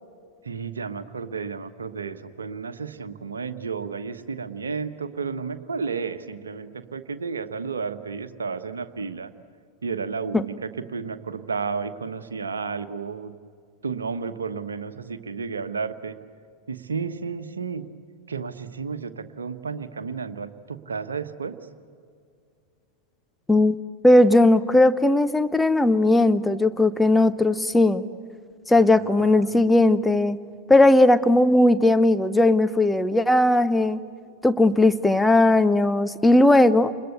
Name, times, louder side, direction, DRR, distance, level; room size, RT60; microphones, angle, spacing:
voice 1, 0.4-9.3 9.8-13.4 13.8-16.2 16.7-17.9 18.3-21.6 28.7-29.7, right 5 dB, 70° right, 9 dB, 1.3 m, -32 dB
voice 2, 24.0-28.0 28.7-30.4 30.7-34.0 34.4-36.9, left 2 dB, 5° left, 11 dB, 0.9 m, -18 dB
29.0 x 21.5 x 8.1 m, 2.2 s
figure-of-eight pair, 90°, 0 cm